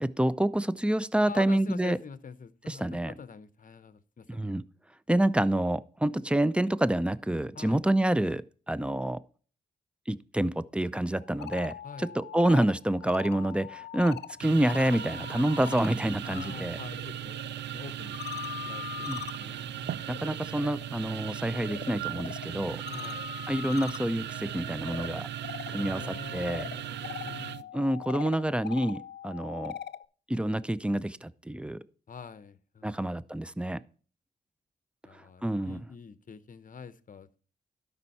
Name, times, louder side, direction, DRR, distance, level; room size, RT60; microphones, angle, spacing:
voice 1, 0.0-2.0 2.7-3.1 4.3-4.6 5.1-9.2 10.1-16.8 19.1-19.2 20.1-22.8 23.5-25.3 25.7-26.0 26.3-26.6 27.7-29.7 30.3-31.8 32.8-33.8 35.1-35.8, right 1 dB, 5° right, 0.5 m, -28 dB
voice 2, 1.3-4.4 7.5-7.8 11.8-12.2 16.2-18.2 18.6-20.0 22.9-23.3 25.7-27.7 32.1-33.0 35.0-37.4, left 5 dB, 50° left, 0.8 m, -45 dB
sound 1, 11.2-16.5 16.8-30.0, left 9 dB, 70° left, 0.5 m, -42 dB
sound 2, 14.4-27.6, right 12 dB, 80° right, 0.4 m, -38 dB
12.0 x 5.6 x 4.2 m
cardioid pair, 55°, 18 cm